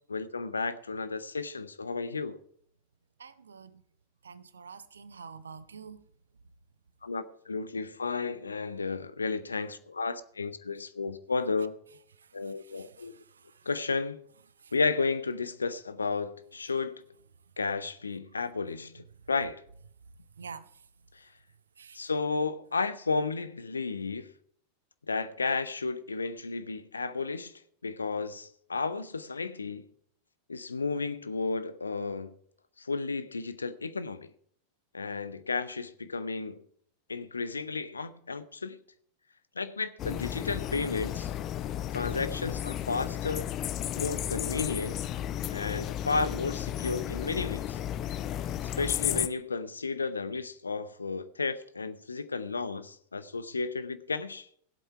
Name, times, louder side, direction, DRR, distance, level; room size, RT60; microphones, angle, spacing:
voice 1, 0.1-2.4 7.0-11.7 12.3-13.1 13.7-14.2 14.7-17.0 17.6-19.6 21.1-21.3 21.9-24.3 25.1-27.5 27.8-29.9 30.5-32.3 32.8-34.3 34.9-36.6 37.1-38.8 39.6-41.3 41.9-43.5 44.0-45.0 45.5-47.8 48.8-54.5, left 4 dB, 75° left, 0.7 m, -33 dB
voice 2, 3.2-3.8 4.2-6.1 12.2-13.7 14.6-14.7 20.4-20.9 21.8-22.1, right 5 dB, 70° right, 0.7 m, -48 dB
sound 1, 40.0-49.3, left 11 dB, 35° left, 0.6 m, -33 dB
17.0 x 7.9 x 4.7 m
figure-of-eight pair, 90°, 0 cm